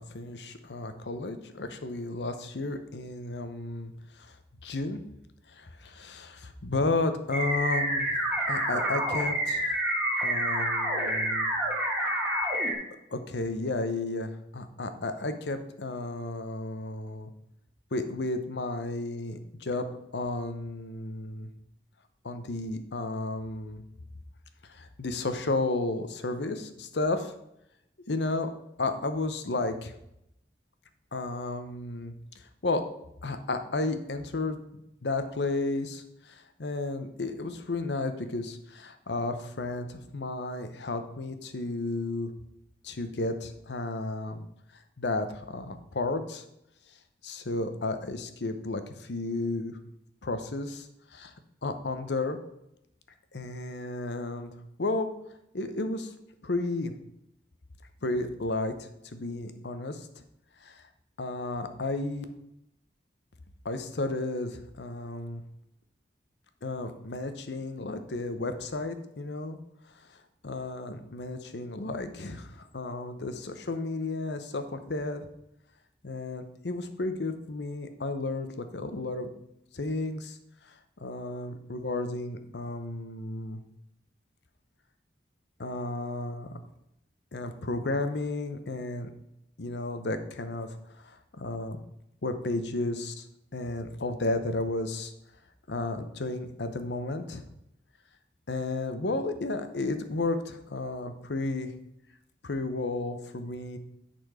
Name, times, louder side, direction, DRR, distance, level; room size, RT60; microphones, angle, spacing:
voice 1, 0.0-4.3 4.6-5.0 5.5-8.2 8.5-9.8 10.2-11.5 13.1-17.3 17.9-19.9 20.1-21.5 22.2-23.8 24.7-27.3 28.1-28.5 28.8-29.9 31.1-32.1 32.6-32.8 33.2-34.6 35.0-42.3 42.8-44.5 45.0-46.4 47.2-49.8 50.2-51.3 51.6-52.4 53.3-54.5 54.8-55.1 55.5-56.1 56.4-56.9 58.0-60.1 60.6-60.8 61.2-62.2 63.6-65.4 66.6-69.6 70.4-75.3 76.0-79.3 79.7-80.4 80.6-80.7 81.0-83.6 85.6-86.6 87.3-89.1 89.6-91.8 92.2-93.2 93.5-95.1 95.7-97.5 98.5-101.7 102.4-103.8, left 2 dB, 80° left, 9 dB, 0.8 m, -33 dB
sound 1, 7.3-12.7, right 1 dB, 5° right, 2.2 m, -28 dB
9.2 x 4.3 x 4.8 m, 0.81 s
head